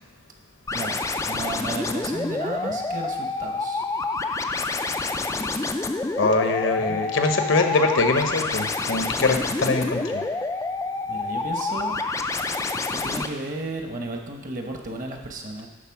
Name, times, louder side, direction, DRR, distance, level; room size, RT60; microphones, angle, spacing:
sound 1, 0.7-13.3, left 3 dB, 15° left, 0.3 m, -28 dB
voice 1, 0.7-3.8 11.1-11.9 12.9-15.7, right 2 dB, 40° right, 2 dB, 1.0 m, -33 dB
voice 2, 6.2-10.3, left 3 dB, 70° left, 5 dB, 0.9 m, -23 dB
11.5 x 4.1 x 5.8 m, 1.1 s
head